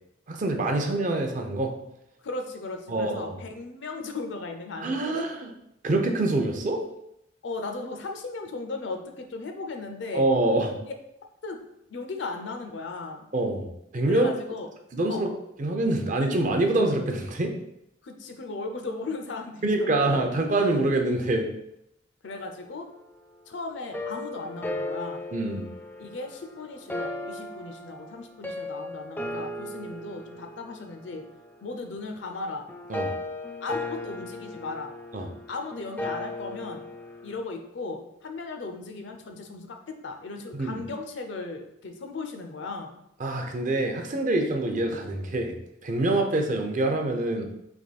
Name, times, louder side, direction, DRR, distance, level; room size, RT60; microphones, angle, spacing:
voice 1, 0.3-1.7 2.9-3.4 4.8-5.5 5.8-6.8 10.1-10.7 13.3-14.3 14.9-15.3 15.6-17.5 19.6-21.5 25.3-25.7 32.9-33.1 35.1-35.3 40.5-40.8 43.2-45.5 45.8-47.5, right 2 dB, 40° right, 4 dB, 0.5 m, -25 dB
voice 2, 2.2-5.3 7.4-10.3 11.4-11.6 11.9-13.3 14.1-14.7 15.1-15.3 18.0-20.2 22.2-22.9 23.5-25.2 26.0-31.2 31.6-32.7 33.6-34.9 35.5-36.9 37.2-43.0, left 3 dB, 65° left, 5 dB, 0.5 m, -36 dB
sound 1, 23.9-37.4, left 1 dB, 10° left, 0.3 m, -37 dB
3.5 x 3.0 x 4.1 m, 0.81 s
head